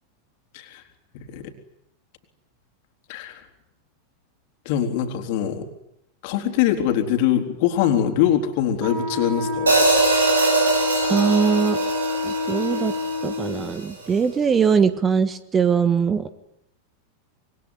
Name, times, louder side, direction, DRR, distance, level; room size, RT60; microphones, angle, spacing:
voice 1, 1.1-1.5 3.1-3.4 4.7-5.7 6.2-9.8, left 10 dB, 50° left, 6 dB, 3.8 m, -23 dB
Wind instrument woodwind instrument, 8.8-13.7, left 3 dB, 40° right, 5.3 m, -27 dB
Hi-hat, 9.7-13.8, right 3 dB, 75° right, 6.8 m, -22 dB
voice 2, 11.1-11.8 12.2-12.9 13.2-16.3, right 6 dB, 20° right, 13 dB, 1.4 m, -21 dB
26.5 x 22.5 x 9.5 m, 0.80 s
figure-of-eight pair, 90°, 0 cm